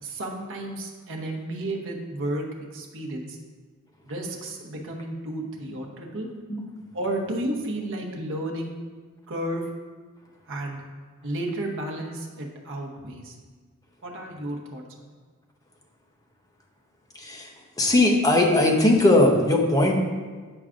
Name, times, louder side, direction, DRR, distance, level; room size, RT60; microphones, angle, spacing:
voice 1, 0.0-2.4 2.7-3.4 4.0-6.3 6.9-8.7 9.3-9.6 10.5-10.8 11.2-13.3 14.0-15.1, right 1 dB, 60° right, 0 dB, 0.9 m, -32 dB
voice 2, 17.2-17.5 17.8-19.9, left 1 dB, 15° left, 0 dB, 0.7 m, -19 dB
8.7 x 4.7 x 2.5 m, 1.5 s
head